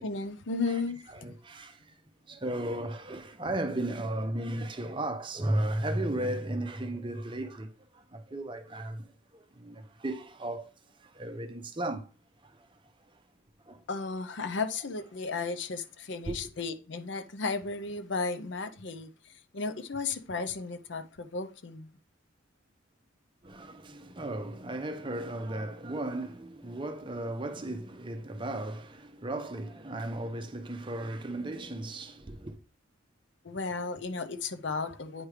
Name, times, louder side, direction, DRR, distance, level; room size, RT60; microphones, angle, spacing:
voice 1, 0.0-1.3 13.9-21.9 33.4-35.3, left 4 dB, 60° left, 0.6 m, -34 dB
voice 2, 1.2-2.0 2.3-9.1 9.3-10.7 11.0-12.1 12.4-12.7 13.7-13.8 16.3-16.4 23.4-32.6, right 1 dB, 25° right, 0.7 m, -35 dB
8.8 x 3.2 x 4.8 m
head